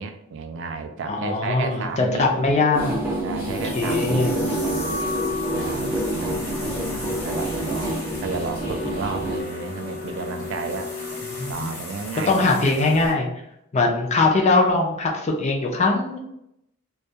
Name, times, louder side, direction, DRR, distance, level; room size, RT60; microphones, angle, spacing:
voice 1, 0.0-2.4 3.2-5.0 5.5-11.0 11.5-12.9 13.8-14.0, right 4 dB, 60° right, 7 dB, 0.3 m, -33 dB
voice 2, 1.1-3.0 3.5-4.4 6.3-6.8 11.4-11.8 12.3-13.3 13.7-16.2, left 3 dB, 30° left, 1 dB, 0.4 m, -22 dB
sound 1, 1.9-13.1, left 1 dB, 75° left, 1.0 m, -37 dB
sound 2, 2.7-9.4, right 1 dB, 10° right, 0.6 m, -28 dB
Wind instrument woodwind instrument, 4.5-11.5, left 5 dB, 40° right, 0.8 m, -34 dB
2.2 x 2.2 x 2.7 m, 0.78 s
head